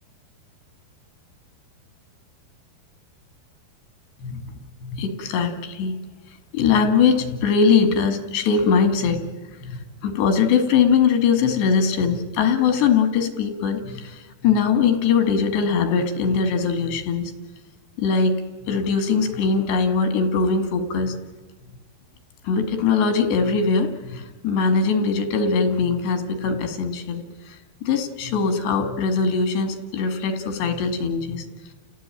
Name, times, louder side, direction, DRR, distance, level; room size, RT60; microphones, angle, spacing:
voice 1, 4.2-4.5 4.8-5.9 6.5-9.3 9.6-17.3 18.0-18.4 18.7-21.2 22.4-27.6 27.8-31.5, left 5 dB, 90° left, 8 dB, 4.3 m, -21 dB
30.0 x 16.5 x 9.0 m, 1.3 s
omnidirectional pair, 4.7 m